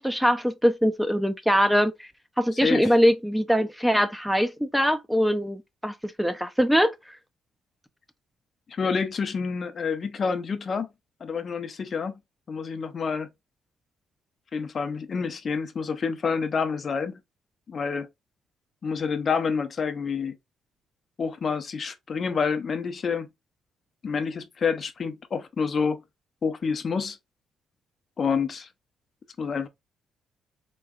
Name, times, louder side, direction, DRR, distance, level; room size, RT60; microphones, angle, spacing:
voice 1, 0.0-2.1 2.4-6.9, equal, ahead, 0.4 m, -22 dB
voice 2, 2.6-2.9 8.7-10.9 11.2-12.1 12.5-13.3 14.5-17.2 17.7-18.1 18.8-20.4 21.2-23.3 24.0-26.0 26.4-27.2 28.2-28.7 29.4-29.7, left 5 dB, 45° left, 0.7 m, -28 dB
4.6 x 3.1 x 2.4 m
cardioid pair, 90°, 0 cm